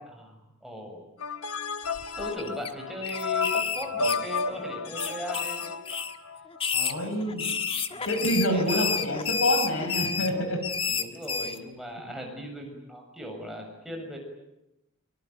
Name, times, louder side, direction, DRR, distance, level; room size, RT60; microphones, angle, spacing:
voice 1, 0.6-1.0 2.2-5.8 7.2-7.5 7.9-8.1 8.5-9.1 10.9-14.2, left 1 dB, ahead, 1 dB, 7.0 m, -38 dB
sound 1, 1.2-6.6, left 4 dB, 90° left, 1.4 m, -32 dB
sound 2, 1.9-2.7 3.0-4.6 5.0-6.2 6.5-11.6, left 6 dB, 25° left, 1.5 m, -30 dB
voice 2, 6.7-7.5 8.1-10.6, equal, 75° left, 6 dB, 5.7 m, -27 dB
24.0 x 24.0 x 9.2 m, 0.89 s
head